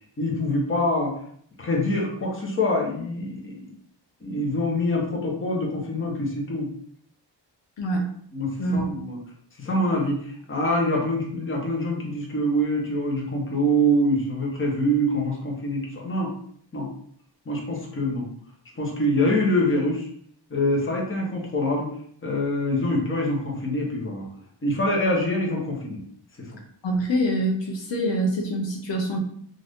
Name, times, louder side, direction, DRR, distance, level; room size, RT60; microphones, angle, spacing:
voice 1, 0.2-1.2 1.6-3.6 4.2-6.7 8.3-9.2 9.6-16.3 16.7-16.9 17.5-18.3 18.8-20.1 20.5-21.9 22.2-24.3 24.6-26.0 26.4-26.5, left 1 dB, 30° left, -1 dB, 0.8 m, -25 dB
voice 2, 7.8-8.1 8.6-9.0 26.8-29.2, right 1 dB, 75° left, 1 dB, 0.7 m, -25 dB
2.6 x 2.5 x 3.4 m, 0.63 s
wide cardioid pair, 120°, 45 cm